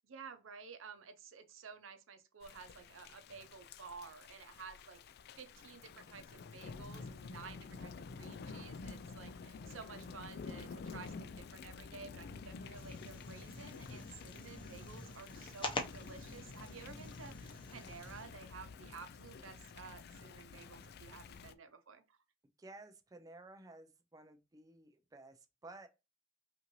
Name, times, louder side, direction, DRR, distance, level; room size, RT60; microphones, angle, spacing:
voice 1, 0.0-5.0 5.4-22.2, right 5 dB, 90° right, 0.7 m, -53 dB
Thunder / Rain, 2.4-21.5, left 4 dB, 55° left, 0.3 m, -50 dB
sound 1, 12.7-18.2, left 2 dB, 25° left, 0.7 m, -46 dB
voice 2, 22.6-25.9, right 2 dB, 20° right, 0.4 m, -55 dB
5.5 x 2.6 x 3.0 m
head